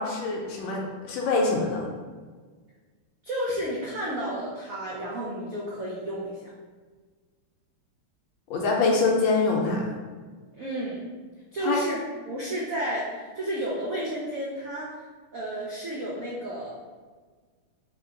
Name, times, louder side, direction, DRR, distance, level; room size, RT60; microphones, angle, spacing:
voice 1, 0.0-1.9 8.5-9.8 11.6-11.8, left 3 dB, 75° left, -1 dB, 1.3 m, -24 dB
voice 2, 3.2-6.4 10.5-11.0 11.5-12.0 12.3-14.9 15.3-16.8, right 1 dB, 85° right, -5 dB, 0.7 m, -31 dB
3.5 x 3.1 x 3.8 m, 1.5 s
omnidirectional pair, 2.3 m